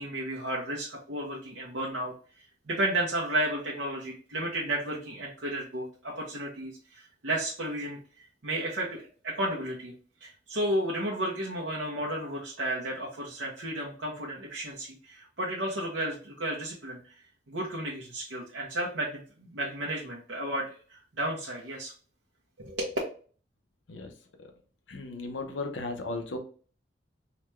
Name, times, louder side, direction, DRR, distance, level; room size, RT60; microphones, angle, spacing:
voice 1, 0.0-2.1 2.7-9.9 10.2-17.0 17.5-21.9 22.6-22.9, right 1 dB, 80° right, -4 dB, 0.8 m, -33 dB
voice 2, 24.9-26.4, left 2 dB, 90° left, 4 dB, 0.7 m, -35 dB
3.9 x 2.3 x 3.1 m, 0.41 s
head